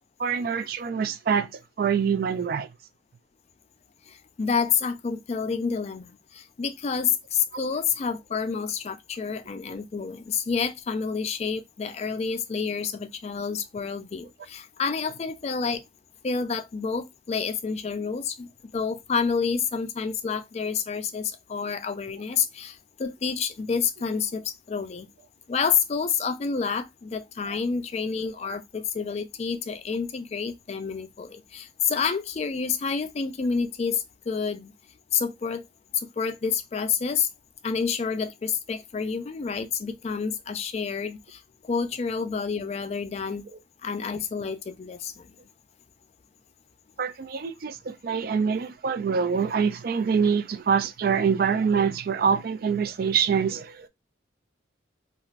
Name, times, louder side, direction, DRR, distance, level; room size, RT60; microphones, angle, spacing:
voice 1, 0.2-1.5 1.8-2.7 27.5-27.6 47.0-53.9, right 6 dB, 50° right, 0.3 m, -25 dB
voice 2, 4.1-15.8 16.2-25.1 25.5-34.7 35.1-35.6 35.9-37.3 37.6-43.5 43.8-45.3, left 6 dB, 35° left, 0.3 m, -29 dB
3.1 x 2.4 x 2.3 m
head